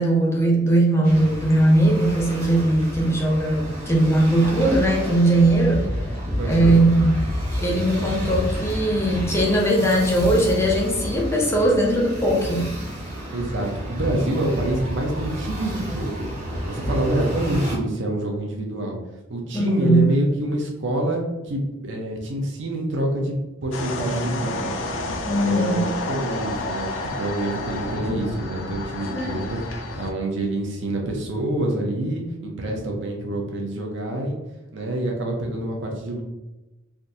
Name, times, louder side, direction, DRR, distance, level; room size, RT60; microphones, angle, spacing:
voice 1, 0.0-5.8 6.4-7.1 7.6-12.7 19.5-20.0 25.3-25.9 29.1-29.3, right 1 dB, 15° left, -2 dB, 0.5 m, -19 dB
sound 1, 1.0-17.8, equal, 40° right, 1.2 m, -30 dB
voice 2, 6.4-6.7 13.3-16.3 16.7-19.0 19.3-23.3 23.6-24.7 25.2-34.4 34.7-36.2, right 1 dB, 65° right, 1 dB, 0.6 m, -27 dB
sound 2, 23.7-30.1, left 2 dB, 70° left, 0.4 m, -30 dB
3.4 x 2.5 x 2.7 m, 1.0 s
head